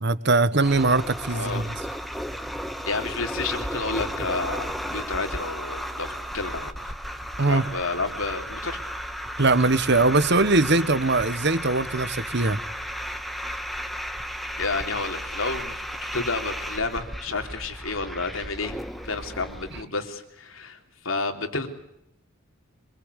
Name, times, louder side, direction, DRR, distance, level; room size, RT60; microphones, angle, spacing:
voice 1, 0.0-1.7 7.4-7.6 9.4-12.6, right 3 dB, 55° right, 14 dB, 1.3 m, -21 dB
sound 1, 0.6-19.8, equal, ahead, 1.5 m, -34 dB
voice 2, 1.3-1.7 2.8-6.7 7.5-8.8 14.6-18.8 19.0-20.8 21.0-21.7, left 3 dB, 85° left, 6 dB, 3.3 m, -30 dB
25.0 x 23.0 x 8.3 m, 0.81 s
head